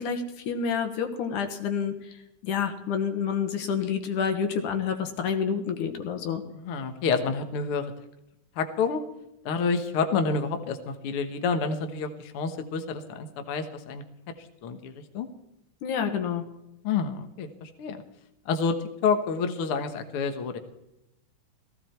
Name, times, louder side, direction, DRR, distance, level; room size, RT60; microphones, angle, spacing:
voice 1, 0.0-2.1 2.4-6.4 15.8-16.4, left 7 dB, 75° left, 6 dB, 2.8 m, -28 dB
voice 2, 6.5-7.9 8.6-9.0 9.4-14.0 14.4-15.3 16.8-18.0 18.4-20.6, left 5 dB, 55° left, 7 dB, 1.7 m, -28 dB
16.0 x 16.0 x 4.5 m, 0.88 s
omnidirectional pair, 3.7 m